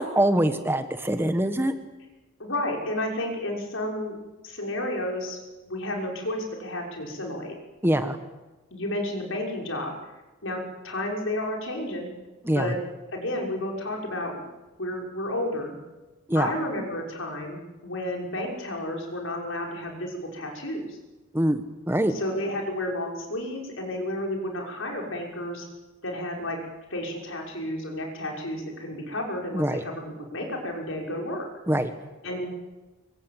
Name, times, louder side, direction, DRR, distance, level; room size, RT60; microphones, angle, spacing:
voice 1, 0.0-1.7 7.8-8.2 12.4-12.7 16.3-16.5 21.3-22.1 29.5-29.8 31.7-31.9, right 1 dB, 10° right, 8 dB, 1.3 m, -24 dB
voice 2, 2.4-4.2 4.4-5.4 5.7-7.5 8.7-9.9 10.4-12.1 12.5-12.8 13.1-14.4 14.8-15.7 16.3-21.0 22.1-25.7 26.0-26.6 26.9-31.4 32.2-32.5, left 1 dB, 70° left, 1 dB, 6.1 m, -31 dB
24.5 x 23.5 x 9.0 m, 1.1 s
head